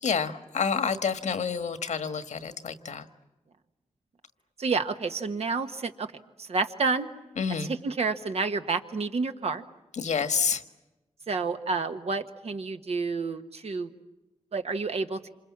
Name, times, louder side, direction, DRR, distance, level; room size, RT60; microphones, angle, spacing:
voice 1, 0.0-3.0 7.4-7.7 9.9-10.6, left 6 dB, 85° left, 9 dB, 1.5 m, -28 dB
voice 2, 4.6-6.1 6.4-7.1 7.8-9.6 11.3-13.9 14.5-15.2, right 4 dB, 60° right, 7 dB, 1.5 m, -29 dB
27.5 x 26.5 x 7.4 m, 1.0 s
wide cardioid pair, 170°, 12 cm